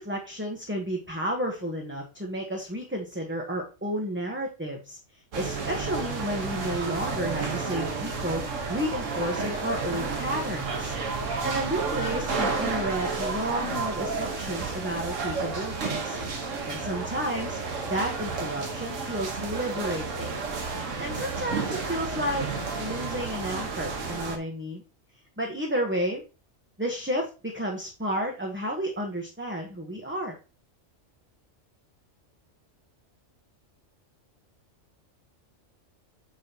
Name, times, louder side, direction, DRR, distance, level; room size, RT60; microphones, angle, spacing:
voice 1, 0.0-10.9 11.4-16.2 16.7-17.6 17.9-20.3 21.0-22.5 22.8-24.8 25.4-26.2 26.8-30.4, equal, 10° right, 0 dB, 1.1 m, -31 dB
sound 1, 5.3-24.4, right 4 dB, 75° right, 1.7 m, -31 dB
9.1 x 5.5 x 2.9 m, 0.32 s
omnidirectional pair, 1.3 m